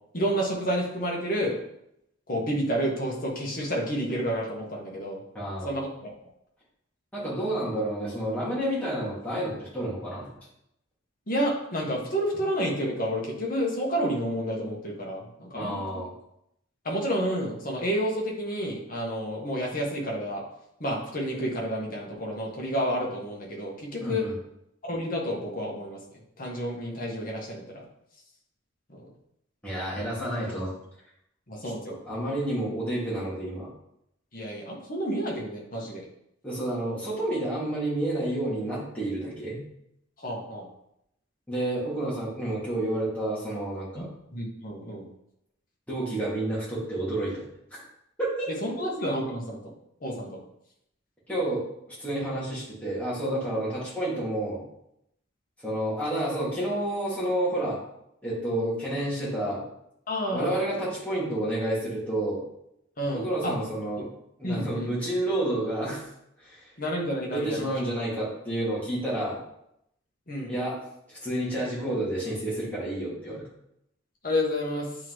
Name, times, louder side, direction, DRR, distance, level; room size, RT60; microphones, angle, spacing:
voice 1, 0.1-1.6 2.3-5.2 5.6-6.1 11.3-16.0 16.8-20.4 20.8-24.2 24.8-26.0 26.4-27.8 28.9-29.1 31.5-32.0 34.3-36.1 40.2-40.7 43.9-44.1 44.3-45.1 48.6-49.7 50.0-50.4 60.1-60.6 63.0-63.6 64.4-64.9 66.8-67.8 70.3-70.5 74.2-74.9, equal, 45° left, -1 dB, 1.4 m, -30 dB
voice 2, 5.3-5.7 7.1-10.3 15.5-16.1 24.0-24.3 29.6-30.7 31.6-31.7 32.1-33.7 36.4-39.6 41.5-44.1 45.9-47.4 48.2-48.5 51.3-51.6 52.0-54.6 55.6-57.8 58.2-59.6 60.3-62.4 63.1-64.1 64.4-66.0 66.4-66.7 67.3-69.4 70.5-70.8 71.1-73.5, right 1 dB, 5° left, -8 dB, 2.3 m, -30 dB
8.3 x 3.9 x 3.2 m, 0.78 s
head